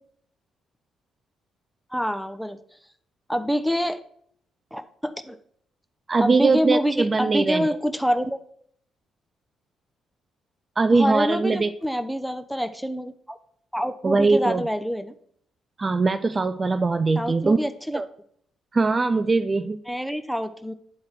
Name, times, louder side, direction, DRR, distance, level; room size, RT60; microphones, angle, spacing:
voice 1, 1.9-2.6 3.3-4.0 4.7-5.4 6.2-8.4 10.9-13.4 13.7-15.1 17.2-18.0 19.9-20.7, equal, ahead, 9 dB, 0.8 m, -26 dB
voice 2, 6.1-7.7 10.8-11.7 14.0-14.6 15.8-17.6 17.9-18.1 18.7-19.8, right 3 dB, 35° right, 11 dB, 0.4 m, -21 dB
9.8 x 3.8 x 4.4 m, 0.63 s
hypercardioid pair, 50°, 0 cm